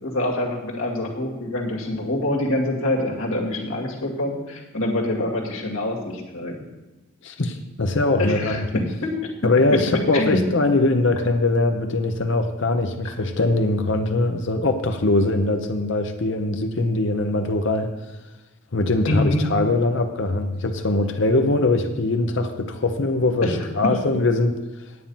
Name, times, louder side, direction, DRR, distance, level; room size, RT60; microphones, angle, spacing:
voice 1, 0.0-6.6 8.2-9.1 10.1-10.4 13.0-13.1 19.1-19.4 23.4-23.5 23.8-23.9, left 1 dB, 80° left, -1 dB, 2.2 m, -25 dB
voice 2, 7.2-8.6 9.4-17.9 18.7-24.6, left 2 dB, 60° left, 6 dB, 0.8 m, -22 dB
9.6 x 8.8 x 5.6 m, 1.1 s
head